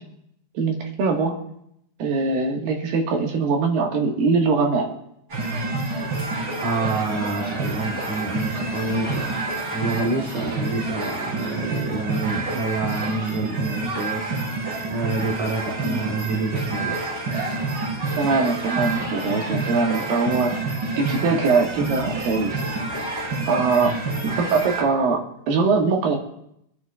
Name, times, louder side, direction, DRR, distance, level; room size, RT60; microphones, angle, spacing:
voice 1, 0.6-1.4 2.0-5.0 15.8-16.0 18.2-20.5 21.0-22.6 23.5-23.9 24.2-25.2 25.5-26.2, right 4 dB, 80° right, 3.4 m, -22 dB
sound 1, 5.3-24.8, right 2 dB, 35° right, 3.3 m, -28 dB
voice 2, 6.6-14.4 14.9-17.1, right 3 dB, 60° right, 2.8 m, -28 dB
25.0 x 11.0 x 2.4 m
omnidirectional pair, 4.1 m